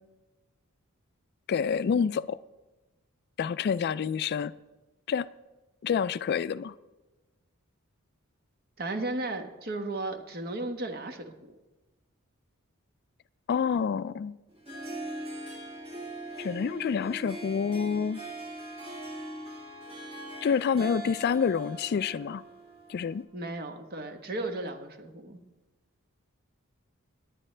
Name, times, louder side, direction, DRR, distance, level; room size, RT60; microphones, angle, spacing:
voice 1, 1.5-2.4 3.4-4.5 5.1-5.3 5.8-6.7 13.5-14.4 16.4-18.2 20.4-22.4 22.9-23.3, left 6 dB, 50° left, 0.3 m, -28 dB
voice 2, 8.8-11.5 23.3-25.4, right 2 dB, 45° right, 1.1 m, -35 dB
Harp, 14.5-23.2, right 2 dB, 25° right, 2.1 m, -41 dB
18.0 x 10.5 x 3.3 m
head